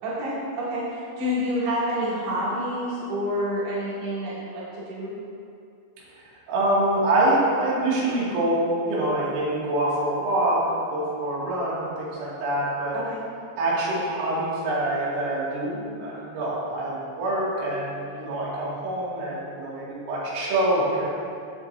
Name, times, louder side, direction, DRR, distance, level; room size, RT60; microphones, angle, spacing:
voice 1, 0.0-5.2 12.9-13.2, equal, 65° right, -9 dB, 4.6 m, -28 dB
voice 2, 6.5-12.9 13.6-21.1, right 1 dB, 80° right, -7 dB, 4.8 m, -25 dB
16.5 x 7.2 x 2.7 m, 2.5 s
omnidirectional pair, 5.6 m